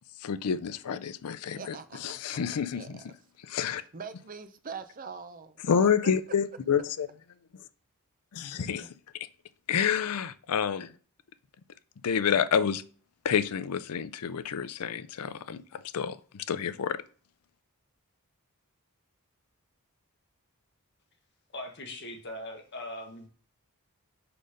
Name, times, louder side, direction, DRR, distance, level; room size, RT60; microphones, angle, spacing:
voice 1, 0.2-1.8 2.0-3.0 3.5-3.8 5.7-7.1 8.3-8.9 9.7-10.9 12.0-12.8 13.2-15.6 15.9-17.0, left 7 dB, 90° left, 0.5 m, -28 dB
voice 2, 1.5-2.2 2.7-2.9 3.8-6.1 8.5-8.9, right 5 dB, 40° right, 0.6 m, -43 dB
voice 3, 21.5-23.3, left 1 dB, 50° left, 1.4 m, -40 dB
5.0 x 4.4 x 5.0 m
head